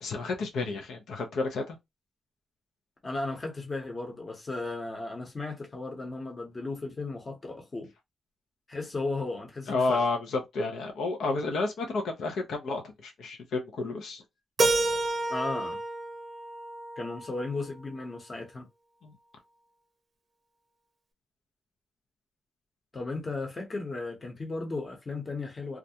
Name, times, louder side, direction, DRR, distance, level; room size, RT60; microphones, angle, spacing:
voice 1, 0.0-1.8 9.7-14.2 19.0-19.1, left 3 dB, 80° left, 0.6 m, -31 dB
voice 2, 3.0-7.9 8.7-10.1 15.3-15.8 17.0-18.7 22.9-25.8, left 3 dB, 25° left, 0.8 m, -35 dB
Keyboard (musical), 14.6-17.5, right 2 dB, 35° right, 0.6 m, -29 dB
2.4 x 2.1 x 2.7 m
wide cardioid pair, 140°, 0 cm